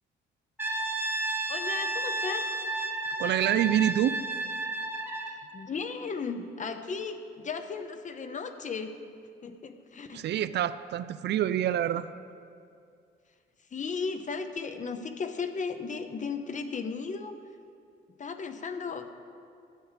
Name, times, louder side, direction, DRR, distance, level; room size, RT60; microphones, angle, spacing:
Brass instrument, 0.6-5.4, right 2 dB, 10° right, 1.1 m, -32 dB
voice 1, 1.5-2.4 5.5-9.0 9.4-10.3 13.7-17.3 18.2-19.2, left 5 dB, 40° left, 8 dB, 0.8 m, -35 dB
voice 2, 3.2-4.2 10.1-12.1, right 11 dB, 60° right, 14 dB, 0.4 m, -26 dB
12.5 x 8.0 x 5.0 m, 2.4 s
cardioid pair, 90°, 20 cm